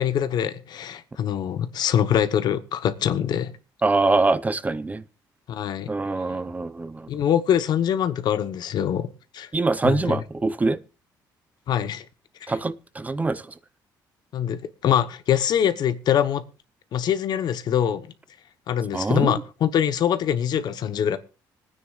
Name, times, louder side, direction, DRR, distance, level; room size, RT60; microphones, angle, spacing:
voice 1, 0.0-3.5 5.5-5.9 7.1-9.1 9.3-9.5 9.8-10.2 11.7-12.0 12.4-12.5 14.3-16.4 16.9-18.1 18.7-21.2, left 9 dB, 65° left, 1.0 m, -24 dB
voice 2, 3.8-5.0 5.9-7.1 9.5-10.8 12.5-13.4 18.9-19.4, right 3 dB, 20° right, 0.6 m, -24 dB
25.5 x 9.5 x 2.4 m
cardioid pair, 100°, 8 cm